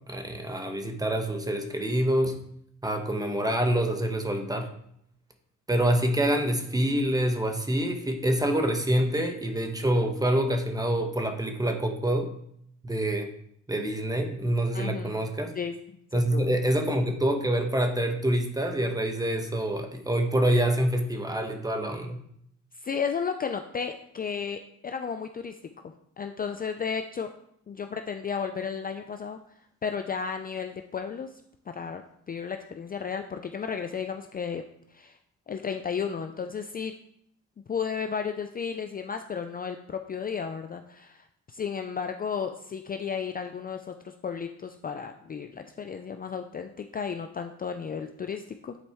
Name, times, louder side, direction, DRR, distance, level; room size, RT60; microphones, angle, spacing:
voice 1, 0.1-2.4 2.8-4.7 5.7-12.3 12.8-13.3 13.7-15.5 16.1-22.2, right 1 dB, 10° right, 5 dB, 1.1 m, -26 dB
voice 2, 14.7-15.2 15.6-15.7 16.1-16.5 22.8-25.6 26.2-27.3 27.7-29.4 29.8-31.3 31.7-32.0 32.3-34.6 34.9-35.2 35.5-36.9 37.7-43.9 44.2-48.8, left 6 dB, 30° left, 6 dB, 0.4 m, -33 dB
9.7 x 4.3 x 3.5 m, 0.71 s
cardioid pair, 90°, 30 cm